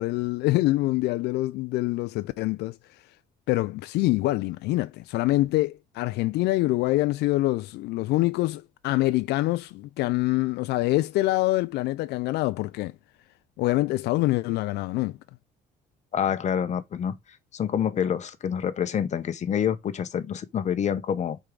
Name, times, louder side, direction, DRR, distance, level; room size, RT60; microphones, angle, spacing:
voice 1, 0.0-3.0 3.5-12.9 13.6-15.2, left 18 dB, 80° left, 0.4 m, -25 dB
voice 2, 16.1-17.2 17.5-21.4, left 8 dB, 45° left, 1.0 m, -27 dB
6.6 x 4.7 x 3.8 m
cardioid pair, 110°, 17 cm